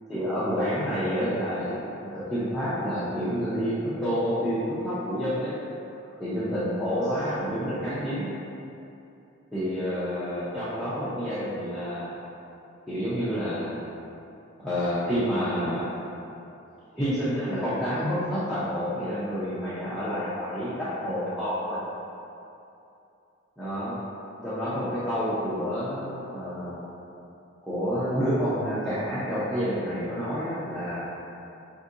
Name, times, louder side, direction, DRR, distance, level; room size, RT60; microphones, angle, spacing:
voice 1, 0.1-5.5 6.2-8.4 9.5-12.1 12.9-13.8 14.6-15.9 16.9-21.8 23.6-24.0 24.4-26.8 27.6-31.1, equal, ahead, -14 dB, 0.6 m, -29 dB
5.6 x 2.7 x 2.5 m, 2.8 s
head